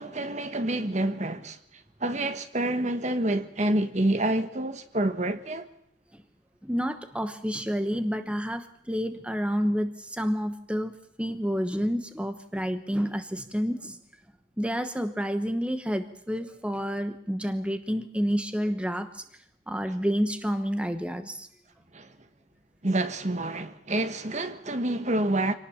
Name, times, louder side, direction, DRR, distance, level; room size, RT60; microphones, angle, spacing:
voice 1, 0.0-1.6 2.0-5.7 21.9-22.1 22.8-25.5, right 1 dB, 35° right, 1.3 m, -28 dB
voice 2, 6.6-14.0 14.6-19.2 19.7-21.5, equal, 5° right, 1.1 m, -29 dB
25.5 x 18.5 x 7.1 m
head